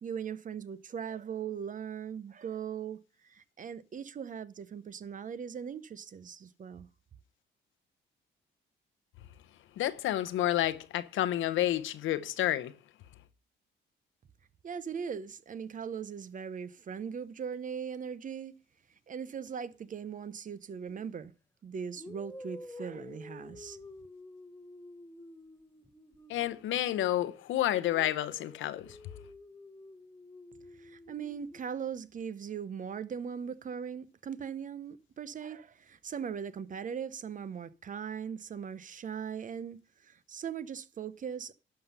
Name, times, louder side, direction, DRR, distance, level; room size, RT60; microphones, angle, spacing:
voice 1, 0.0-6.9 14.6-18.5 19.1-21.3 21.6-23.8 30.8-41.5, right 7 dB, 40° right, 0.7 m, -39 dB
voice 2, 9.8-12.7 26.3-29.0, left 13 dB, 80° left, 0.8 m, -30 dB
sound 1, 20.9-21.1 21.9-27.3 27.7-31.6, left 2 dB, 10° left, 1.1 m, -50 dB
11.5 x 5.8 x 5.4 m
cardioid pair, 90°, 20 cm